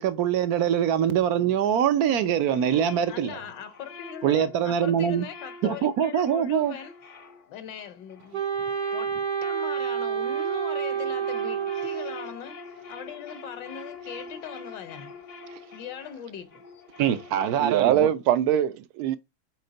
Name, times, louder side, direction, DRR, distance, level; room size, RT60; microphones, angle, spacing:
voice 1, 0.0-3.4 4.2-5.3 5.6-6.7 17.0-18.1, right 9 dB, 65° right, 0.9 m, -23 dB
sound 1, 2.4-9.7 10.0-18.0, left 4 dB, 50° left, 0.9 m, -45 dB
voice 2, 3.1-6.9 7.5-8.4 8.9-9.1 9.4-12.6 12.9-15.1 15.7-16.6, left 8 dB, 65° left, 1.3 m, -40 dB
Wind instrument woodwind instrument, 8.3-12.3, right 7 dB, 45° right, 0.6 m, -29 dB
voice 3, 17.6-19.2, right 10 dB, 80° right, 1.5 m, -23 dB
6.7 x 4.3 x 4.0 m
omnidirectional pair, 2.3 m